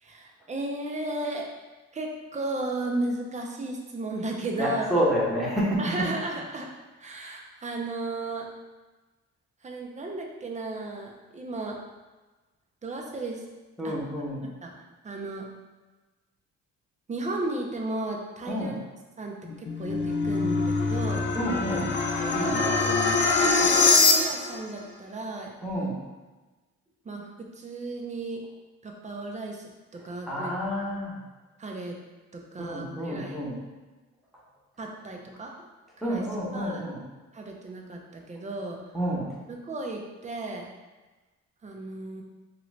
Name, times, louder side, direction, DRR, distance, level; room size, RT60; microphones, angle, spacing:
voice 1, 0.0-1.5 1.9-4.9 5.8-6.7 7.0-8.5 9.6-11.8 12.8-13.4 13.8-13.9 14.6-14.7 15.0-15.4 17.1-18.7 19.2-21.3 22.2-22.8 23.1-25.6 27.0-27.3 27.6-28.4 28.8-30.8 31.6-32.0 32.3-33.4 34.8-35.5 36.0-36.2 36.5-36.9 37.3-38.8 39.5-40.7 41.6-42.2, right 2 dB, 25° right, 0 dB, 0.5 m, -34 dB
voice 2, 4.6-6.1 13.8-14.5 18.5-18.8 21.3-21.9 22.3-23.1 25.6-26.0 30.3-31.2 32.6-33.6 36.0-37.0 38.9-39.4, equal, ahead, -6 dB, 0.9 m, -29 dB
sound 1, 19.5-24.6, left 3 dB, 40° left, 0.4 m, -23 dB
2.9 x 2.6 x 3.2 m, 1.2 s
cardioid pair, 90°, 30 cm